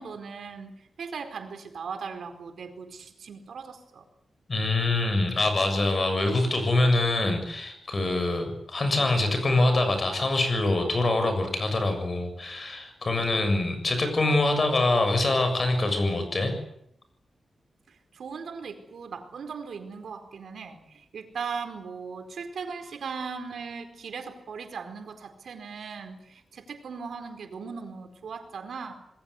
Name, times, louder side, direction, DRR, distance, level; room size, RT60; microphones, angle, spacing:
voice 1, 0.0-4.0 17.9-28.9, right 5 dB, 75° right, 7 dB, 4.5 m, -38 dB
voice 2, 4.5-16.5, left 2 dB, 35° left, 7 dB, 7.0 m, -24 dB
27.0 x 20.5 x 8.4 m, 0.76 s
wide cardioid pair, 145°, 0 cm